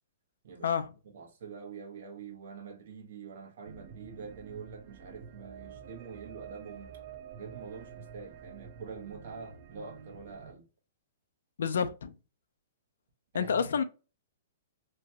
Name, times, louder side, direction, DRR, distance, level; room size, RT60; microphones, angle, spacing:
voice 1, 0.6-0.9 11.6-12.1 13.3-13.8, left 7 dB, 80° left, 0.4 m, -29 dB
voice 2, 1.1-6.9 7.4-10.7 13.3-13.8, right 5 dB, 65° right, 1.0 m, -45 dB
sound 1, 3.7-10.5, right 7 dB, 45° right, 0.5 m, -49 dB
2.9 x 2.2 x 2.8 m
hypercardioid pair, 145°, 0 cm